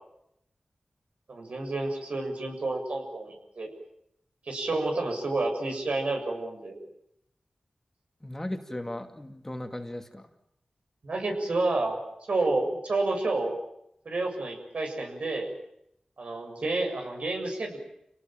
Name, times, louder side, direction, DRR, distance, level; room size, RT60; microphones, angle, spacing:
voice 1, 1.3-3.7 4.5-6.8 11.0-12.0 12.3-13.6 14.1-15.5 16.2-17.8, right 2 dB, 70° right, 3 dB, 7.2 m, -29 dB
voice 2, 8.2-10.3, left 1 dB, 15° left, 5 dB, 2.5 m, -36 dB
29.0 x 18.5 x 9.1 m, 0.78 s
wide cardioid pair, 75°, 2 cm